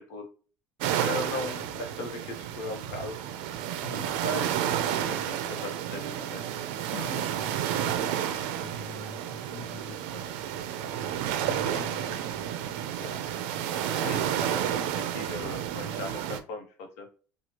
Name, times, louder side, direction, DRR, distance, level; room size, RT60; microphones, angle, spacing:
sound 1, 0.8-16.4, right 10 dB, 80° right, 0.4 m, -31 dB
voice 1, 1.0-3.2 4.2-4.7 5.0-6.4 9.3-9.4 13.0-13.2 13.9-16.7 17.0-17.1, left 2 dB, 70° left, 4 dB, 0.9 m, -38 dB
voice 2, 3.8-4.3 6.9-11.2 11.5-12.5, left 4 dB, 40° left, 5 dB, 0.4 m, -45 dB
2.9 x 2.3 x 2.9 m, 0.38 s
cardioid pair, 165°, 5 cm